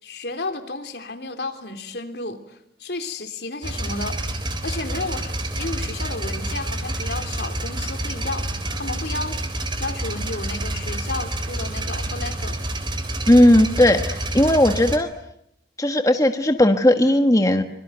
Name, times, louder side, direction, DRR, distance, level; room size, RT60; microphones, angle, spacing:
voice 1, 0.0-4.2 4.6-8.5 8.8-9.4 9.8-12.6, left 2 dB, 70° left, 7 dB, 3.5 m, -32 dB
sound 1, 3.6-15.0, right 1 dB, 25° right, 3.6 m, -28 dB
voice 2, 13.3-15.1 15.8-17.6, left 1 dB, 20° left, 6 dB, 1.4 m, -16 dB
25.5 x 24.0 x 9.3 m, 0.77 s
head